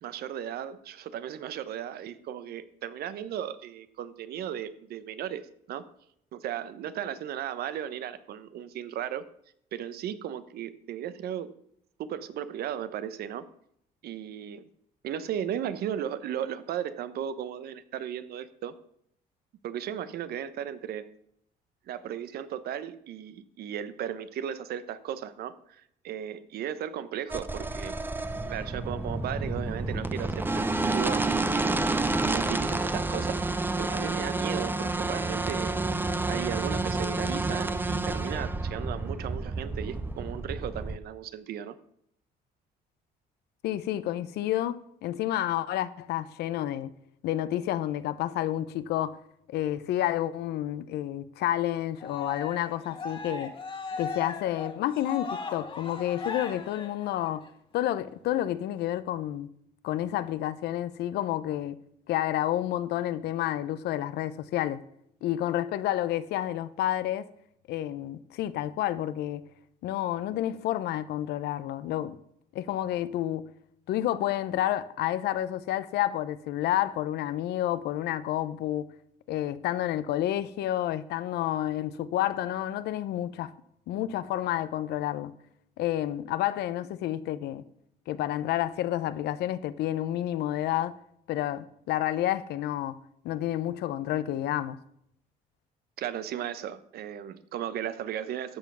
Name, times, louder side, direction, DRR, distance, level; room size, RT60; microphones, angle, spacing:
voice 1, 0.0-5.8 6.3-9.3 9.7-11.5 12.0-13.5 14.0-14.6 15.0-18.7 19.6-21.1 21.9-28.0 28.5-31.7 32.2-33.4 33.8-41.8 96.0-98.6, right 10 dB, 65° right, 0.9 m, -36 dB
sound 1, 27.3-41.0, right 2 dB, 10° right, 0.7 m, -29 dB
voice 2, 43.6-46.9 47.2-49.2 49.5-53.5 54.0-57.4 57.7-59.5 59.8-61.8 62.1-64.8 65.2-67.3 67.7-69.4 69.8-72.2 72.5-73.5 73.9-78.8 79.3-83.5 83.9-85.3 85.8-87.6 88.1-91.0 91.3-93.0 93.2-94.8, left 13 dB, 75° left, 0.7 m, -30 dB
Cheering, 52.0-57.5, left 4 dB, 30° left, 1.5 m, -38 dB
12.5 x 7.0 x 6.1 m
cardioid pair, 110°, 17 cm